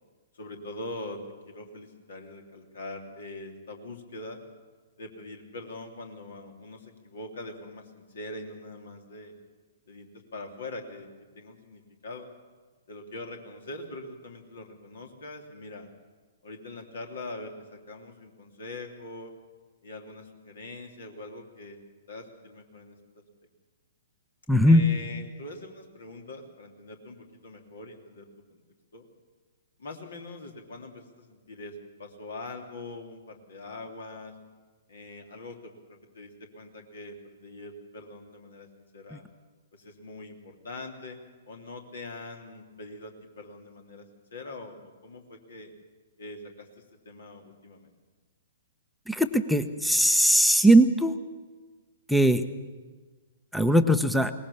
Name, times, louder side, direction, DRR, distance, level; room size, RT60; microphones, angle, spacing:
voice 1, 0.3-1.2 1.5-4.4 5.0-9.3 9.9-11.1 11.3-12.3 12.9-15.9 16.4-19.3 19.8-21.8 22.1-23.0 24.6-28.6 28.9-29.1 29.8-34.3 34.9-39.2 39.7-41.2 41.5-44.0 44.3-45.7 46.2-47.9, left 2 dB, 60° left, 3 dB, 3.1 m, -43 dB
voice 2, 24.5-24.8 39.1-39.2 49.1-51.1 52.1-52.4 53.5-54.3, right 1 dB, ahead, 11 dB, 0.9 m, -20 dB
22.0 x 19.5 x 7.0 m, 1.4 s
figure-of-eight pair, 115°, 0 cm